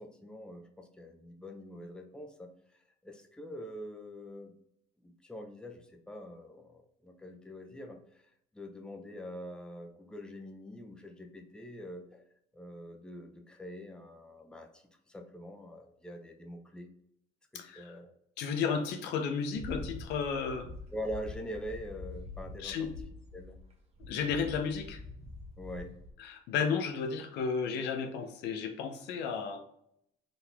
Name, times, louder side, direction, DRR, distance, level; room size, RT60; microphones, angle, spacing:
voice 1, 0.0-2.5 3.0-4.5 5.0-8.2 8.5-12.2 12.5-16.9 17.5-18.1 20.9-22.9 23.3-23.6 25.6-26.0, equal, 5° left, 3 dB, 0.6 m, -44 dB
voice 2, 17.5-17.9 18.4-20.7 22.6-22.9 24.1-25.0 26.2-29.6, left 6 dB, 85° left, 5 dB, 0.7 m, -33 dB
sound 1, 19.5-23.7 24.0-26.1, left 2 dB, 40° right, 1.1 m, -45 dB
4.0 x 2.8 x 3.4 m, 0.73 s
cardioid pair, 110°, 17 cm